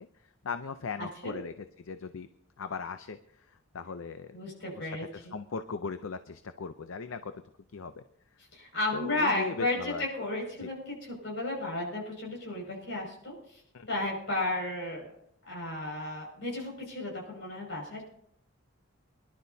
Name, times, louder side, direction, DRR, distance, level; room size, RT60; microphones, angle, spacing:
voice 1, 0.4-2.3 2.6-3.2 3.7-4.3 4.8-7.3 7.7-8.0 8.9-10.0 10.6-10.7 13.7-13.9, left 5 dB, 75° left, 10 dB, 0.5 m, -38 dB
voice 2, 1.0-1.3 4.3-5.3 8.5-13.3 13.9-15.1 15.4-18.0, left 2 dB, 60° left, -2 dB, 5.9 m, -33 dB
24.5 x 11.5 x 2.7 m, 0.71 s
head